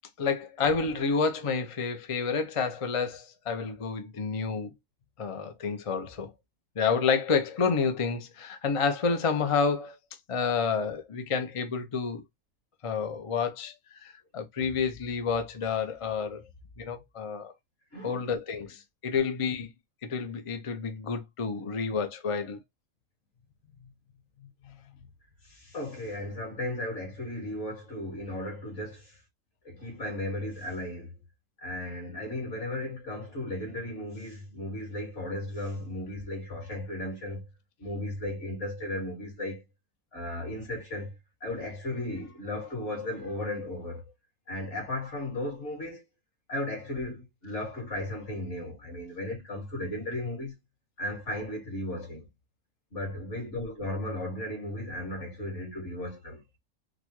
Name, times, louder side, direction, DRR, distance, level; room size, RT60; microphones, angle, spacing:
voice 1, 0.2-4.7 5.2-6.3 6.8-10.0 10.3-12.2 12.8-13.7 14.0-16.4 16.8-17.5 18.0-19.7 20.0-22.6, left 5 dB, 40° left, 0.4 m, -29 dB
voice 2, 17.9-18.2 25.4-29.2 29.6-31.2 31.6-37.4 37.8-39.6 40.1-44.0 44.5-46.0 46.5-50.5 51.0-52.3 52.9-56.4, left 1 dB, 60° left, 2.2 m, -35 dB
4.1 x 2.1 x 2.9 m
omnidirectional pair, 1.4 m